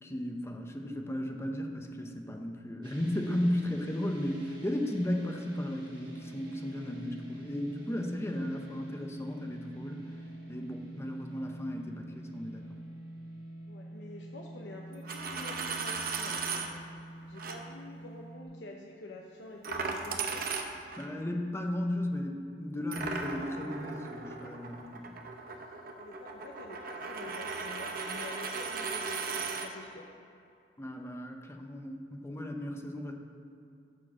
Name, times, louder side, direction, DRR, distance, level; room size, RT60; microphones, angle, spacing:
voice 1, 0.0-10.0 10.5-12.6 21.0-25.1 30.8-33.1, left 1 dB, 15° left, 3 dB, 0.8 m, -35 dB
sound 1, 2.8-18.4, right 1 dB, 25° right, 1.6 m, -47 dB
voice 2, 13.7-16.8 17.3-20.5 26.0-30.1, left 2 dB, 80° left, -1 dB, 0.8 m, -48 dB
Coin (dropping), 14.9-16.7 17.4-17.6 19.6-21.1 22.9-29.7, right 4 dB, 55° right, 0.8 m, -37 dB
9.7 x 4.6 x 7.3 m, 2.6 s
head